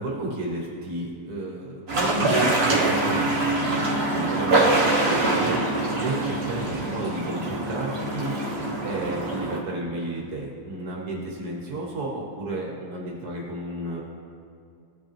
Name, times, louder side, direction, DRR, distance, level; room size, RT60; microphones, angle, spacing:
voice 1, 0.0-8.6 8.8-14.0, right 1 dB, 70° right, -2 dB, 1.6 m, -32 dB
sound 1, 1.9-9.6, right 2 dB, 40° right, 1.4 m, -24 dB
15.5 x 5.3 x 3.0 m, 2.4 s
omnidirectional pair, 1.7 m